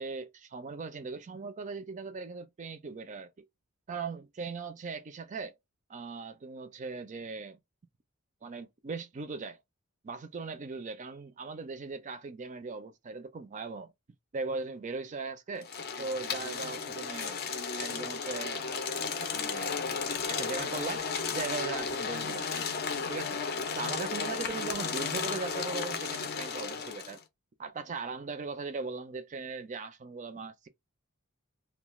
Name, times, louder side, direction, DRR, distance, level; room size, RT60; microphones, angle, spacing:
voice 1, 0.0-3.4 3.9-5.5 5.9-7.6 8.4-9.6 10.0-13.9 14.3-15.7 16.0-17.4 17.8-18.6 19.3-19.8 20.3-22.8 23.1-23.4 23.8-27.2 27.6-30.7, right 4 dB, 35° right, 0.4 m, -39 dB
sound 1, 15.6-27.2, left 5 dB, 45° left, 0.5 m, -34 dB
2.3 x 2.2 x 3.0 m
head